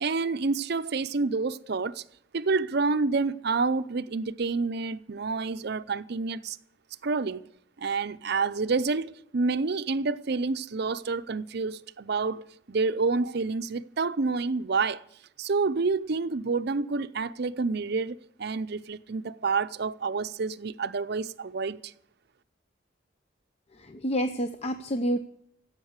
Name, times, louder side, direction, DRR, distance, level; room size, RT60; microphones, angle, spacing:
voice 1, 0.0-2.0 2.3-6.6 7.0-7.5 7.8-15.0 15.4-21.9, right 4 dB, 60° right, 0.6 m, -28 dB
voice 2, 23.8-25.2, equal, 35° left, 0.6 m, -28 dB
15.0 x 8.1 x 8.1 m
head